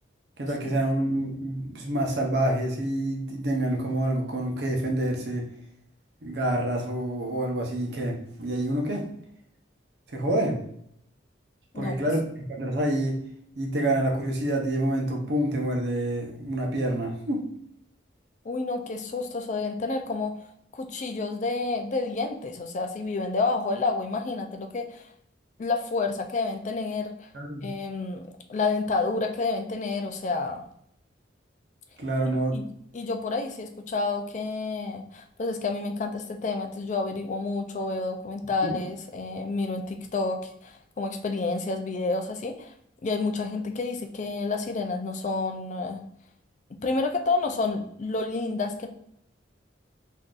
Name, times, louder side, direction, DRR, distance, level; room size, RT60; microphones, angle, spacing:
voice 1, 0.4-5.5 6.2-9.0 10.1-10.6 11.7-13.2 13.6-17.5 27.3-27.7 32.0-32.6 38.6-38.8, right 1 dB, 60° right, 1 dB, 0.7 m, -27 dB
voice 2, 18.4-20.3 20.7-25.1 25.6-27.3 27.6-30.6 32.5-32.6 32.9-42.7 43.0-46.0 46.8-48.9, left 3 dB, 40° left, 5 dB, 0.4 m, -29 dB
3.7 x 2.7 x 2.4 m, 0.70 s
head